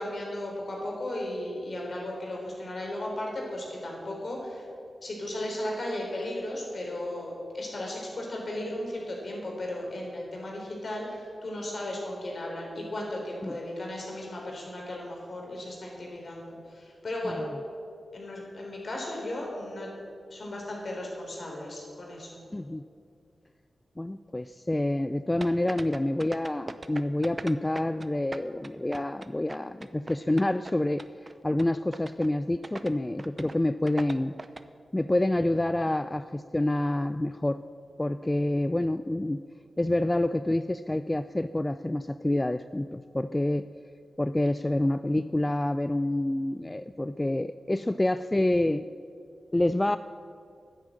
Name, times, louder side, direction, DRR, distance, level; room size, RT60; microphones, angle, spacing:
voice 1, 0.0-4.6 5.0-17.4 18.1-19.9 20.3-22.4, left 1 dB, 60° left, -1 dB, 3.6 m, -35 dB
voice 2, 22.5-22.8 24.0-31.0 31.4-34.3 34.9-37.6 38.0-39.4 39.8-43.7 44.2-48.8 49.5-50.0, left 1 dB, 20° left, 12 dB, 0.3 m, -27 dB
sound 1, 25.4-28.1 28.3-30.7 31.0-31.3 31.6-31.7 31.9-32.3 32.6-32.9 33.2-33.6 33.9-34.6, right 2 dB, 40° right, 0.6 m, -39 dB
10.0 x 9.3 x 7.5 m, 2.3 s
cardioid pair, 60°, 0 cm